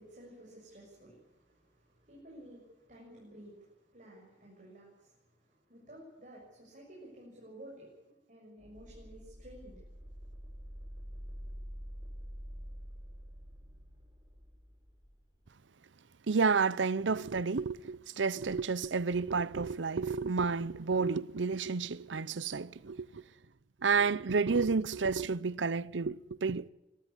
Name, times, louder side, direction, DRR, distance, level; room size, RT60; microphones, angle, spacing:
voice 1, 0.0-9.8, right 1 dB, 45° right, 6.9 m, -53 dB
sound 1, 8.6-15.3, equal, 20° right, 7.6 m, -47 dB
voice 2, 16.3-23.2 23.8-26.7, right 4 dB, 90° right, 0.7 m, -30 dB
24.5 x 14.0 x 9.9 m
head